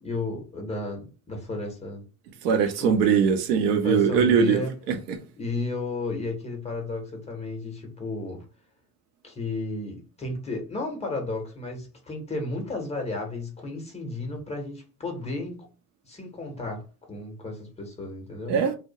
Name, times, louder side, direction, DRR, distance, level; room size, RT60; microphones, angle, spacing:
voice 1, 0.0-2.0 2.8-2.9 3.8-4.7 5.4-8.4 9.2-15.7 16.1-18.6, left 2 dB, 15° left, 0.6 m, -33 dB
voice 2, 2.4-5.2 18.5-18.8, right 7 dB, 80° right, 0.6 m, -22 dB
2.2 x 2.1 x 2.7 m
supercardioid pair, 105°, 48 cm